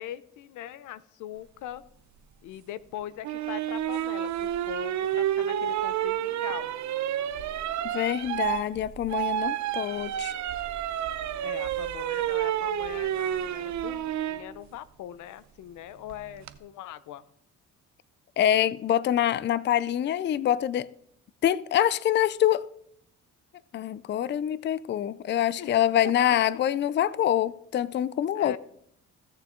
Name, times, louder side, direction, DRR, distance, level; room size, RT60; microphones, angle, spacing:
voice 1, 0.0-1.8 2.4-6.7 11.4-17.2 25.6-25.7 26.0-26.1 28.3-28.6, left 12 dB, 85° left, 0.6 m, -41 dB
sound 1, 3.2-14.4 16.1-16.5, right 11 dB, 70° right, 0.8 m, -30 dB
voice 2, 7.8-10.3 18.4-20.9 21.4-22.7 23.7-28.6, left 11 dB, 40° left, 0.4 m, -25 dB
15.5 x 6.7 x 3.7 m
cardioid pair, 90°, 30 cm